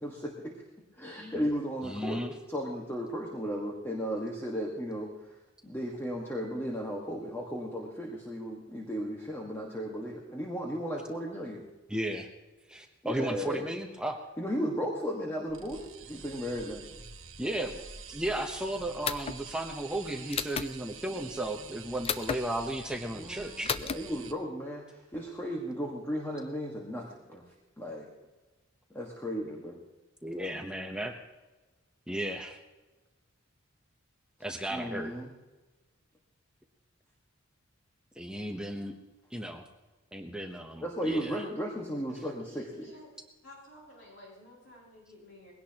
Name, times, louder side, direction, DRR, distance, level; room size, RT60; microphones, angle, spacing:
voice 1, 0.0-0.6 0.9-5.1 5.6-11.6 13.0-13.7 14.4-16.9 21.1-21.3 23.1-27.4 27.8-28.1 28.9-29.8 34.7-35.3 40.8-42.9, equal, 10° left, -2 dB, 1.5 m, -35 dB
voice 2, 1.8-2.3 11.9-12.3 12.7-14.2 17.4-17.8 18.1-23.7 30.2-31.2 32.1-32.6 34.4-35.1 38.2-38.9 39.3-39.7 40.1-41.3, right 1 dB, 5° right, 3 dB, 0.9 m, -35 dB
sound 1, 15.5-24.3, right 6 dB, 65° right, 1.3 m, -47 dB
sound 2, 19.0-19.4 20.3-20.7 22.0-22.4 23.7-24.0, left 7 dB, 30° left, 0.4 m, -31 dB
voice 3, 42.4-43.1 43.4-45.5, left 1 dB, 60° left, -4 dB, 5.8 m, -53 dB
21.0 x 17.0 x 2.9 m, 1.2 s
head